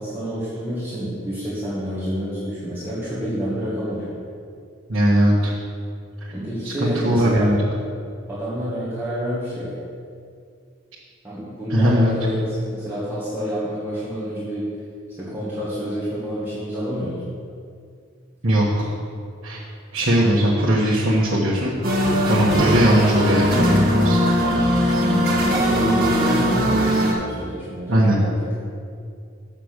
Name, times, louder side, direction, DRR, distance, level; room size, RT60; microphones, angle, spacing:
voice 1, 0.0-4.1 6.3-7.5 8.3-9.7 11.2-14.7 15.2-17.3 24.9-28.5, equal, 10° right, -11 dB, 1.7 m, -28 dB
voice 2, 4.9-5.5 6.6-7.6 11.7-12.1 18.4-18.9 19.4-19.6 19.9-21.8 22.3-24.2 27.9-28.2, equal, 70° right, -7 dB, 1.3 m, -19 dB
sound 1, 21.8-27.1, equal, 45° right, 1.5 m, -19 dB
7.7 x 5.9 x 6.6 m, 2.3 s
head